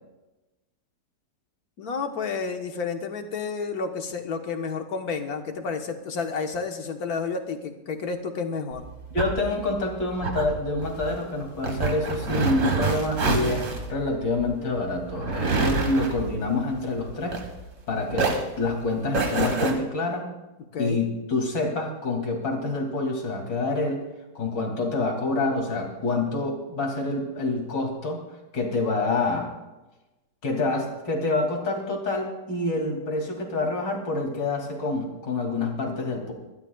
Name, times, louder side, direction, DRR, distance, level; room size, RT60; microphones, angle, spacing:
voice 1, 1.8-8.8 20.7-21.0, left 5 dB, 60° left, 5 dB, 1.6 m, -30 dB
sound 1, 8.7-17.8 18.1-19.7, right 3 dB, 45° right, 1.9 m, -27 dB
voice 2, 9.1-17.4 17.9-18.3 18.6-20.3 20.8-24.0 24.3-28.2 28.5-29.5 30.4-36.3, left 2 dB, 80° left, 1 dB, 3.3 m, -27 dB
25.5 x 13.0 x 2.3 m, 1.0 s
omnidirectional pair, 1.9 m